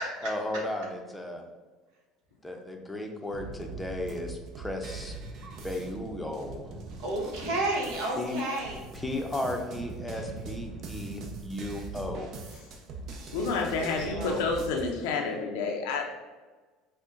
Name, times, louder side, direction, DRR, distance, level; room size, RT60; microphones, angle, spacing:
voice 1, 0.2-1.4 2.4-5.1 5.6-6.7 8.2-8.4 8.9-12.3, left 1 dB, 10° left, 3 dB, 0.6 m, -35 dB
sound 1, 3.3-14.9, right 3 dB, 55° right, 0.6 m, -42 dB
voice 2, 7.0-8.8 13.4-13.5 13.8-14.4, right 2 dB, 70° right, -2 dB, 1.0 m, -31 dB
voice 3, 13.3-16.1, left 4 dB, 80° left, 2 dB, 0.5 m, -29 dB
5.2 x 2.1 x 2.5 m, 1.3 s
supercardioid pair, 90°, 0 cm